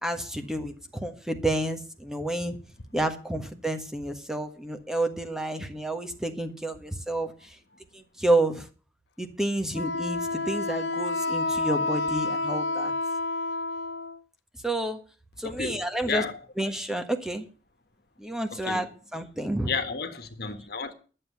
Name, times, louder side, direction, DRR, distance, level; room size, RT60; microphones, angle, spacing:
voice 1, 0.0-2.6 2.9-7.3 7.9-8.7 9.2-12.9 14.6-15.0 15.4-16.2 16.6-17.4 18.2-18.9 19.1-19.7, right 1 dB, 5° right, 1.4 m, -29 dB
Wind instrument woodwind instrument, 9.7-14.2, left 3 dB, 75° left, 0.8 m, -29 dB
voice 2, 15.4-16.4 18.5-18.8 19.6-20.9, left 4 dB, 60° left, 1.6 m, -32 dB
11.5 x 7.6 x 8.3 m
head